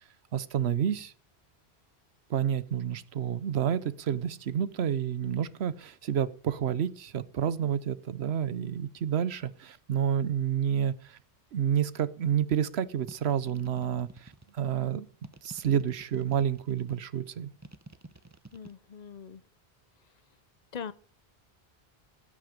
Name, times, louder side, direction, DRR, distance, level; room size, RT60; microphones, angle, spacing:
voice 1, 0.3-1.1 2.3-11.2 11.5-15.1 15.4-17.5, right 9 dB, 85° right, 16 dB, 1.0 m, -29 dB
sound 1, 13.1-14.6 15.2-17.0 17.6-18.7, right 2 dB, 20° right, 0.7 m, -48 dB
voice 2, 18.5-19.4 20.7-20.9, left 7 dB, 45° left, 16 dB, 0.7 m, -41 dB
19.0 x 8.4 x 5.1 m, 0.44 s
omnidirectional pair, 1.1 m